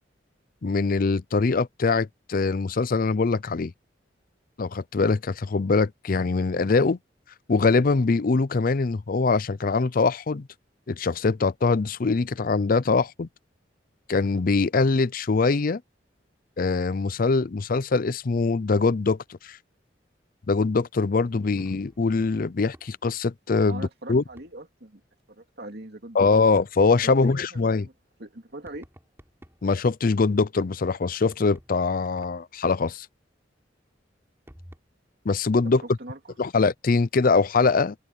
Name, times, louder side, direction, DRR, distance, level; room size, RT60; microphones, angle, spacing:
voice 1, 0.6-3.7 4.6-7.0 7.5-10.5 10.9-13.3 14.1-15.8 16.6-19.6 20.5-24.2 26.1-27.9 29.6-33.1 35.3-35.8 36.4-37.9, left 4 dB, 50° left, 0.5 m, -23 dB
sound 1, 21.1-23.0 24.1-24.6 26.2-26.8 28.7-29.8 31.2-32.6 34.5-34.8, equal, 15° right, 5.8 m, -52 dB
voice 2, 23.7-25.0 25.3-26.2 27.0-27.9 28.2-28.9 35.8-36.3, right 2 dB, 60° right, 2.8 m, -41 dB
open air
head